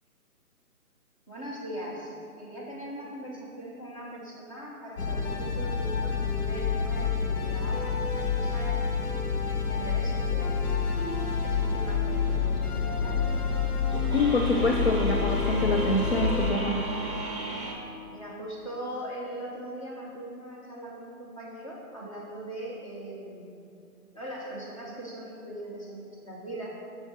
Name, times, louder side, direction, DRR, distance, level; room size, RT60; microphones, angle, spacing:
voice 1, 1.3-9.1 9.7-10.6 11.4-13.2 18.1-23.5 24.1-26.7, right 1 dB, 20° left, -4 dB, 0.9 m, -40 dB
sound 1, 5.0-16.5, left 5 dB, 85° left, 1.0 m, -28 dB
sound 2, 12.1-17.7, right 3 dB, 20° right, 0.7 m, -37 dB
voice 2, 14.1-16.9, left 2 dB, 50° left, 2 dB, 0.4 m, -26 dB
6.2 x 5.2 x 5.1 m, 2.7 s
hypercardioid pair, 165°, 45 cm